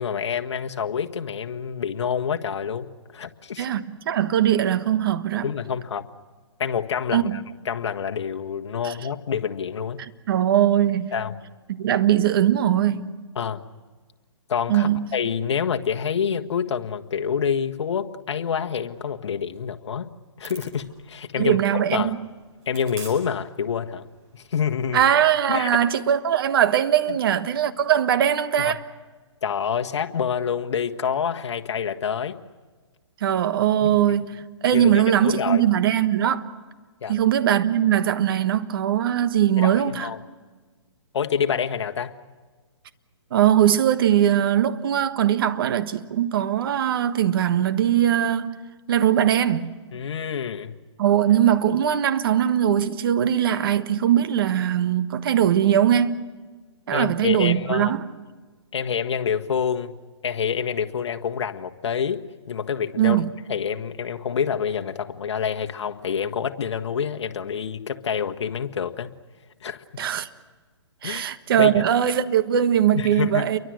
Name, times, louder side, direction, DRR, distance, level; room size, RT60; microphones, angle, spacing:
voice 1, 0.0-3.7 5.4-6.0 6.6-10.0 11.1-11.3 13.3-13.6 14.5-20.1 20.4-22.1 22.6-24.1 24.3-25.0 25.5-25.7 28.6-28.8 29.4-32.4 33.8-34.2 34.7-35.6 37.0-37.2 39.6-40.2 41.1-42.1 49.9-50.7 56.9-57.9 58.7-59.9 60.2-63.2 63.5-69.1 69.6-70.1 71.0-71.2 71.6-71.8 72.9-73.5, left 7 dB, 65° left, 1.6 m, -27 dB
voice 2, 3.6-5.5 7.1-7.4 8.8-8.9 10.3-11.1 11.7-13.1 14.7-15.1 21.4-22.2 24.9-28.8 33.2-36.5 37.1-40.1 43.3-48.5 48.9-49.7 51.0-56.1 56.9-58.0 63.0-63.3 70.0-70.3 71.0-73.6, right 10 dB, 50° right, 1.4 m, -21 dB
sound 1, 20.4-25.9, right 4 dB, 35° right, 7.8 m, -48 dB
29.5 x 23.5 x 6.5 m
hypercardioid pair, 150°, 16 cm